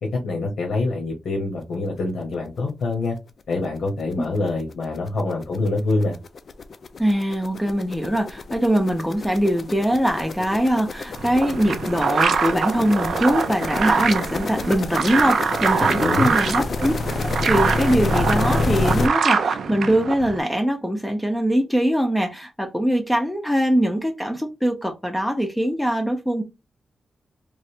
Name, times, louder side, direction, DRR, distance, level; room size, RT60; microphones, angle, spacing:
voice 1, 0.0-3.2 3.5-6.2 15.8-16.3, left 2 dB, 75° left, 0.9 m, -25 dB
sound 1, 3.6-3.7 4.1-4.2 4.5-19.1, left 3 dB, 50° left, 0.4 m, -28 dB
voice 2, 7.0-16.9 17.2-26.4, equal, 5° left, 0.5 m, -22 dB
sound 2, 11.2-20.4, right 6 dB, 75° right, 0.4 m, -24 dB
3.1 x 2.4 x 2.8 m
wide cardioid pair, 140°, 0 cm